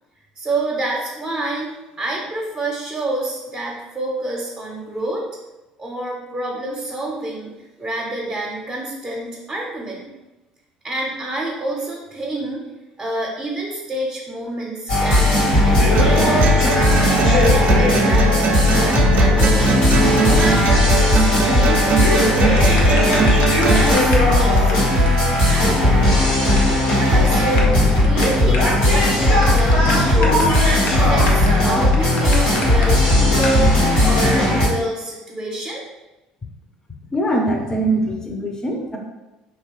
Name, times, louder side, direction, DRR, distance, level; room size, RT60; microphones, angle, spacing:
voice 1, 0.4-5.3 5.8-7.5 7.8-10.0 10.8-12.6 13.0-16.5 17.2-19.8 20.2-23.1 23.6-26.1 27.0-30.5 30.9-33.7 34.0-35.8, right 1 dB, 25° right, -3 dB, 0.8 m, -27 dB
sound 1, 14.9-34.7, left 1 dB, 80° left, 1.2 m, -16 dB
sound 2, 15.9-23.9, right 4 dB, 55° right, 0.4 m, -21 dB
sound 3, 22.6-24.3 24.6-24.7 25.1-25.2 25.4-25.5 25.7-25.8 26.0-26.6 26.9-27.0 27.4-32.9 33.4-33.6, left 3 dB, 60° left, 0.6 m, -30 dB
voice 2, 37.1-39.0, right 1 dB, 20° left, 1 dB, 0.7 m, -22 dB
3.1 x 2.4 x 3.0 m, 1.0 s
hypercardioid pair, 60°, 3 cm